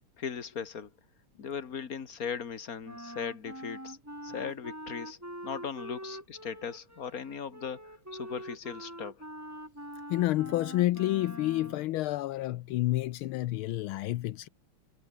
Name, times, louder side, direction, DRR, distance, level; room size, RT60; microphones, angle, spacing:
voice 1, 0.2-0.9 1.4-4.0 4.2-5.2 5.4-9.2, left 7 dB, 40° left, 2.2 m, -38 dB
Wind instrument woodwind instrument, 2.8-11.9, right 1 dB, 5° right, 3.6 m, -44 dB
voice 2, 10.1-14.5, left 16 dB, 80° left, 1.5 m, -29 dB
omnidirectional pair, 2.4 m